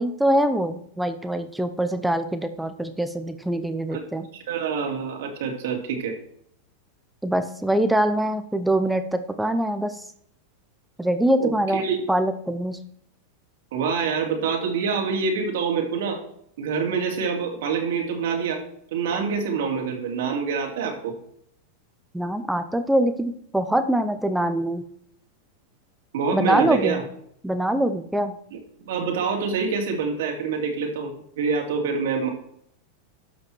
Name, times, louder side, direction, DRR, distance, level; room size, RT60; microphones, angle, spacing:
voice 1, 0.0-4.3 7.2-10.0 11.0-11.8 12.1-12.8 22.1-24.8 26.3-27.0 27.4-28.3, right 1 dB, 5° right, 9 dB, 0.7 m, -24 dB
voice 2, 4.3-6.2 11.4-12.0 13.7-16.2 16.6-18.6 18.9-21.1 26.1-27.0 28.5-32.3, right 5 dB, 75° right, 0 dB, 2.7 m, -26 dB
12.5 x 5.4 x 4.6 m, 0.68 s
hypercardioid pair, 125°, 0 cm